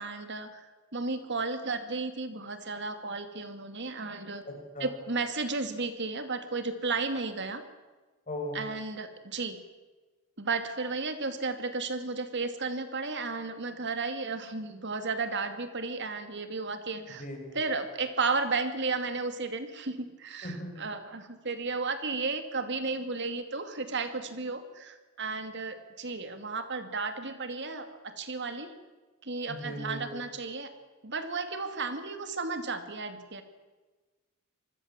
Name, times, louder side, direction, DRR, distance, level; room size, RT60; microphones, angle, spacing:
voice 1, 0.0-4.4 4.8-7.6 8.5-9.6 10.4-17.3 17.5-28.7 29.2-30.7 31.0-33.4, right 4 dB, 55° right, 8 dB, 2.5 m, -33 dB
voice 2, 4.5-4.9 8.3-8.6 17.2-17.6 20.4-20.7 29.6-30.2, left 1 dB, 35° left, 2 dB, 6.4 m, -38 dB
26.5 x 20.5 x 7.5 m, 1.3 s
head